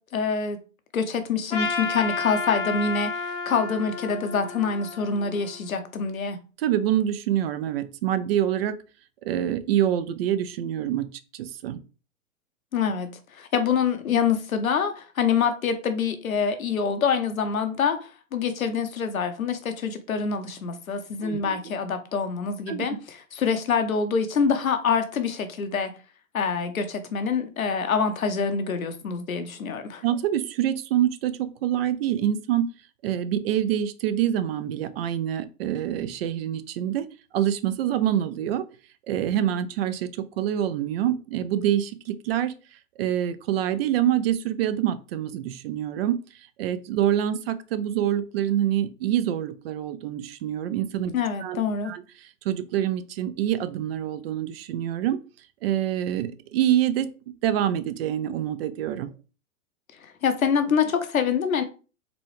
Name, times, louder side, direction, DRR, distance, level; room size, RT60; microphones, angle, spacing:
voice 1, 0.1-0.6 0.9-6.4 12.7-25.9 26.3-30.0 51.1-51.9 60.2-61.6, left 6 dB, 90° left, 0.8 m, -26 dB
Trumpet, 1.5-5.8, left 4 dB, 15° left, 0.5 m, -31 dB
voice 2, 6.6-8.8 9.2-11.1 11.3-11.8 21.2-21.7 22.7-22.9 30.0-32.6 33.0-37.1 37.3-38.6 39.1-42.5 43.0-46.2 46.6-51.1 51.4-52.0 52.4-55.2 55.6-57.1 57.4-59.1, right 11 dB, 50° right, 0.5 m, -26 dB
3.9 x 2.3 x 3.2 m
hypercardioid pair, 110°, 41 cm